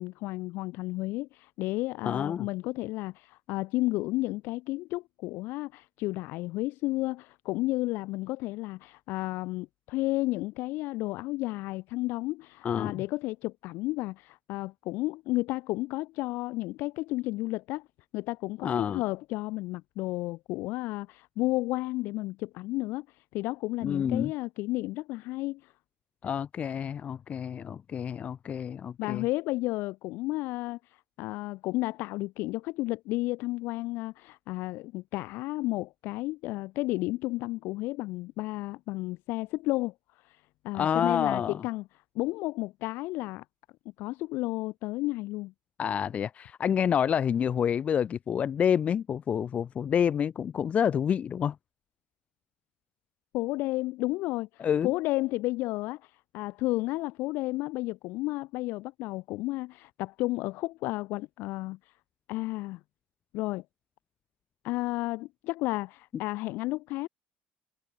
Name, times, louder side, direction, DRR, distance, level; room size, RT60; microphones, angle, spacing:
voice 1, 0.0-17.9 18.1-25.7 29.0-41.9 42.1-43.4 44.0-45.5 53.3-61.9 62.3-62.8 63.3-63.6 64.6-67.1, left 20 dB, 70° left, 0.7 m, -32 dB
voice 2, 2.1-2.5 12.6-13.0 18.6-19.0 23.8-24.3 26.2-29.2 40.7-41.6 45.8-51.6 54.6-54.9, left 8 dB, 35° left, 0.6 m, -28 dB
supercardioid pair, 110°, 4 cm